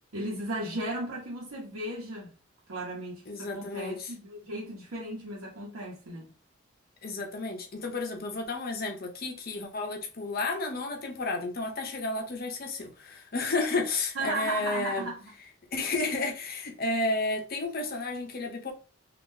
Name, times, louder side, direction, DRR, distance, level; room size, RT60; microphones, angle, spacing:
voice 1, 0.1-2.3 2.7-6.3 14.1-15.2, right 2 dB, 85° right, 0.9 m, -35 dB
voice 2, 3.3-4.1 7.0-15.1 15.7-18.7, left 3 dB, 45° left, 0.7 m, -32 dB
3.6 x 2.4 x 2.6 m
head